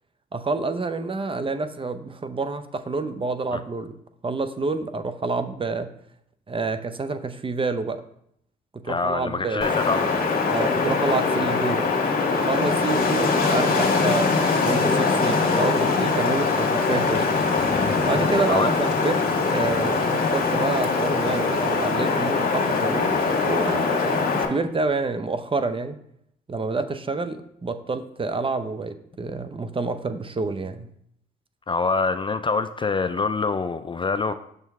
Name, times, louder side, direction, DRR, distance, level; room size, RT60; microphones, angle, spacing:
voice 1, 0.3-4.0 4.2-5.9 6.5-8.0 8.8-9.8 10.5-11.9 12.3-14.3 14.6-17.3 18.0-26.0 26.5-30.9, right 3 dB, 25° right, 10 dB, 0.6 m, -28 dB
voice 2, 8.8-10.2 11.4-11.5 18.5-18.7 31.7-34.3, left 4 dB, 25° left, 10 dB, 0.3 m, -25 dB
Wind, 9.6-24.5, left 4 dB, 45° left, 1.5 m, -22 dB
6.6 x 4.4 x 3.5 m, 0.72 s
hypercardioid pair, 55°, 20 cm